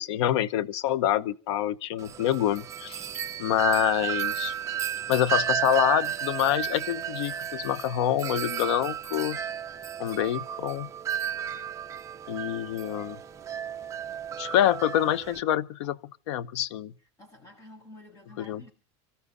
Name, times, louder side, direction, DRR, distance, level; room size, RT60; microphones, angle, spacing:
voice 1, 0.0-3.0 3.4-4.5 5.1-9.4 10.0-10.9 11.4-11.6 12.3-13.2 14.4-16.0 16.3-16.9 18.4-18.7, left 11 dB, 80° left, 0.9 m, -26 dB
Wind chime, 2.0-15.4, right 9 dB, 20° right, 0.8 m, -33 dB
voice 2, 17.2-18.7, left 1 dB, 25° left, 7.3 m, -50 dB
25.0 x 13.5 x 3.9 m
supercardioid pair, 155°, 14 cm